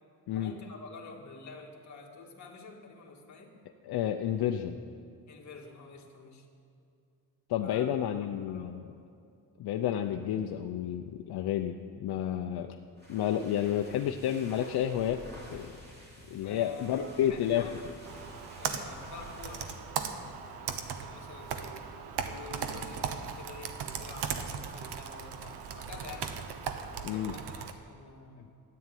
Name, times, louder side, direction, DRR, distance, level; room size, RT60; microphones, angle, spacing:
voice 1, 0.3-3.5 5.3-6.5 7.6-7.9 8.5-8.7 16.4-17.8 18.6-19.8 20.0-21.8 22.2-26.3 27.0-28.5, left 4 dB, 45° left, 0 dB, 2.0 m, -48 dB
voice 2, 3.8-4.8 7.5-8.8 9.6-12.8 13.1-15.2 15.5-15.7 16.3-17.7 27.0-27.3, left 10 dB, 75° left, 5 dB, 0.7 m, -30 dB
sound 1, 12.8-19.8, left 1 dB, 25° right, 3.1 m, -50 dB
Computer keyboard, 18.1-27.7, right 7 dB, 90° right, 1.1 m, -38 dB
13.5 x 9.5 x 9.3 m, 2.5 s
cardioid pair, 160°, 39 cm